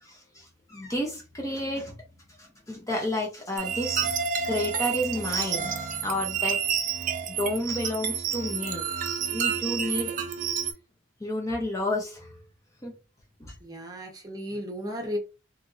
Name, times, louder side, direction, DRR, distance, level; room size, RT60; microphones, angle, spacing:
voice 1, 0.0-1.9 2.4-6.6 7.3-8.9 9.2-10.1 11.2-12.4 12.8-12.9 13.4-13.5, left 1 dB, 15° left, 0.5 m, -31 dB
sound 1, 3.6-10.7, right 7 dB, 45° right, 0.4 m, -29 dB
voice 2, 13.6-15.2, equal, 20° right, 0.8 m, -34 dB
2.9 x 2.5 x 2.5 m
head